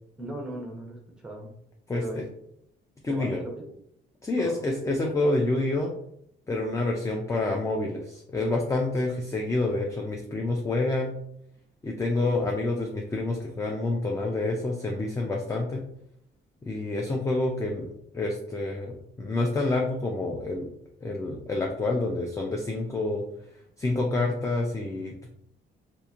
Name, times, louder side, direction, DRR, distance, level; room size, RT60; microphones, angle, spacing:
voice 1, 0.2-1.5 1.9-2.2 3.1-3.7 4.4-4.9, right 1 dB, 5° right, 0 dB, 0.8 m, -38 dB
voice 2, 1.9-2.2 3.0-3.4 4.2-5.9 6.5-11.1 11.8-15.8 16.7-17.9 18.1-20.7 21.0-23.2 23.8-25.3, left 2 dB, 15° left, 1 dB, 0.4 m, -28 dB
2.8 x 2.6 x 2.4 m, 0.73 s
cardioid pair, 90°, 20 cm